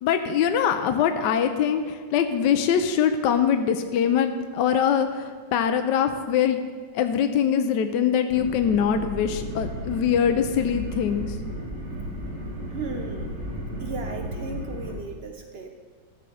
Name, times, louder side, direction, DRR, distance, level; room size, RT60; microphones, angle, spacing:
voice 1, 0.0-6.6 6.9-11.4, left 8 dB, 75° left, 7 dB, 1.2 m, -23 dB
sound 1, 8.3-14.9, equal, 40° right, 2.7 m, -34 dB
voice 2, 12.7-13.3 13.8-15.7, right 3 dB, 85° right, 4 dB, 0.5 m, -35 dB
13.0 x 7.0 x 4.9 m, 1.6 s
omnidirectional pair, 2.0 m